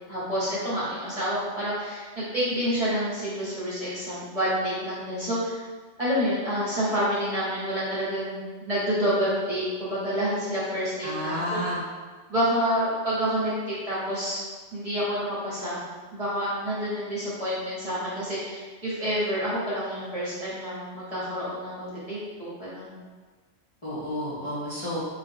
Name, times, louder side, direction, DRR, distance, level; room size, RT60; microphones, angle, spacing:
voice 1, 0.1-5.6 6.0-11.6 12.3-14.5 14.7-15.8 16.1-22.9, equal, 30° right, -9 dB, 1.2 m, -28 dB
voice 2, 11.0-11.8 23.8-25.0, equal, 30° left, -11 dB, 0.9 m, -30 dB
3.9 x 2.4 x 3.8 m, 1.4 s
omnidirectional pair, 1.2 m